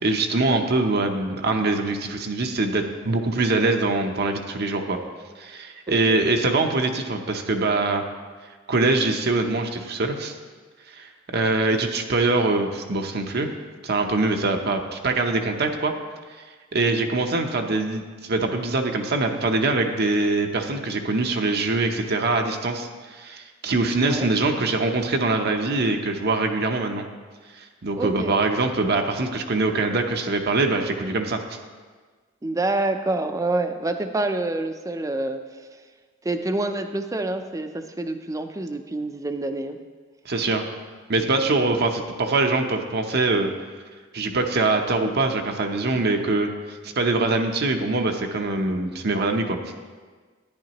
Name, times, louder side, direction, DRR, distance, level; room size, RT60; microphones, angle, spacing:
voice 1, 0.0-5.0 5.4-8.0 8.7-10.3 10.9-13.5 13.8-15.9 16.7-27.1 27.6-31.4 40.3-40.7 41.1-43.5 44.1-49.6, right 3 dB, 55° right, 4 dB, 0.7 m, -23 dB
voice 2, 5.9-6.2 24.0-24.3 28.0-28.3 32.4-35.4 36.2-39.8, right 2 dB, 15° right, 7 dB, 0.5 m, -27 dB
10.5 x 10.0 x 3.0 m, 1.4 s
head